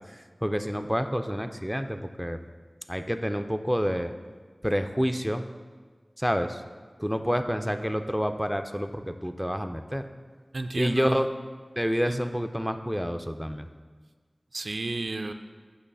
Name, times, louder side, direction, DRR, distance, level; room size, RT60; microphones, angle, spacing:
voice 1, 0.1-2.4 2.9-4.1 4.6-5.4 6.2-6.6 7.0-10.1 10.7-11.3 11.8-13.7, equal, ahead, 7 dB, 0.4 m, -28 dB
voice 2, 10.5-11.2 12.1-12.3 14.5-15.3, right 2 dB, 85° right, 7 dB, 0.3 m, -31 dB
8.4 x 3.2 x 5.4 m, 1.5 s
wide cardioid pair, 55°, 0 cm